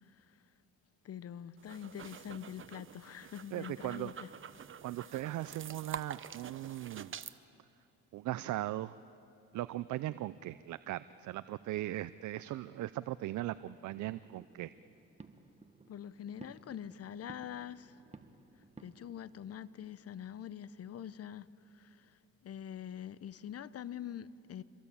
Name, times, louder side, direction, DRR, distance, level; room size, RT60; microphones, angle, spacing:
voice 1, 1.0-4.3 15.9-18.0 18.8-22.2 22.4-24.6, left 9 dB, 55° left, 0.8 m, -45 dB
sound 1, 1.6-7.4, right 7 dB, 40° right, 0.9 m, -47 dB
voice 2, 3.5-4.1 4.8-7.1 8.1-9.0 9.5-14.7, right 15 dB, 75° right, 0.6 m, -38 dB
sound 2, 13.6-19.2, right 3 dB, 20° right, 1.6 m, -57 dB
26.0 x 22.5 x 8.6 m
cardioid pair, 90°, 30 cm